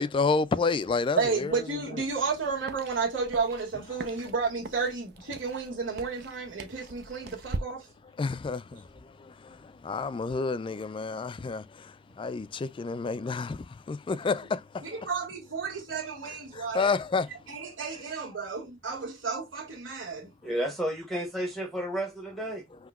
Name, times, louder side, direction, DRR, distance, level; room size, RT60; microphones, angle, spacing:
voice 1, 0.0-1.5 1.9-2.0 8.2-15.1 16.3-17.3, left 4 dB, 25° left, 0.3 m, -30 dB
voice 2, 1.2-7.9 8.7-8.8 14.8-16.9 17.5-20.3, right 4 dB, 75° right, 1.8 m, -32 dB
sound 1, 2.1-7.6, right 3 dB, 55° right, 0.6 m, -42 dB
voice 3, 20.4-22.6, right 1 dB, ahead, 0.9 m, -32 dB
5.8 x 2.9 x 2.3 m
head